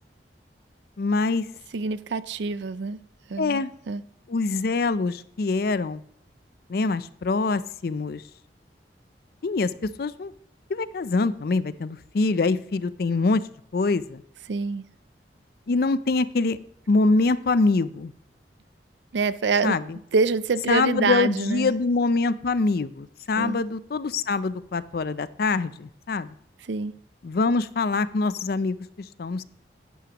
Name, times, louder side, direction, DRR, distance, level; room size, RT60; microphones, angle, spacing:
voice 1, 1.0-1.5 3.4-3.7 4.3-6.0 6.7-8.2 9.4-10.3 10.7-13.4 13.7-14.2 15.7-16.6 16.9-18.1 19.6-20.0 20.7-26.3 27.2-28.8 29.2-29.4, left 3 dB, 55° left, 0.5 m, -24 dB
voice 2, 1.7-3.0 3.3-4.0 14.5-14.8 19.1-19.8 20.1-21.7 23.4-23.6 26.6-27.0, right 4 dB, 80° right, 0.5 m, -26 dB
11.0 x 10.0 x 3.0 m
head